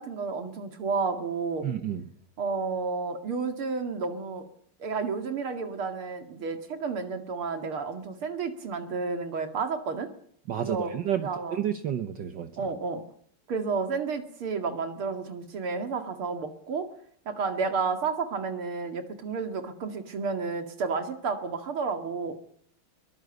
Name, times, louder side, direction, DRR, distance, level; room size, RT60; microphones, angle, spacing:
voice 1, 0.0-1.7 2.4-4.4 4.8-10.1 10.6-10.9 11.2-11.6 12.6-13.0 13.5-16.9 17.3-22.4, right 4 dB, 75° right, 7 dB, 3.0 m, -31 dB
voice 2, 1.6-2.1 10.5-12.7, right 9 dB, 60° right, 8 dB, 1.6 m, -31 dB
22.5 x 19.5 x 8.1 m, 0.65 s
omnidirectional pair, 2.4 m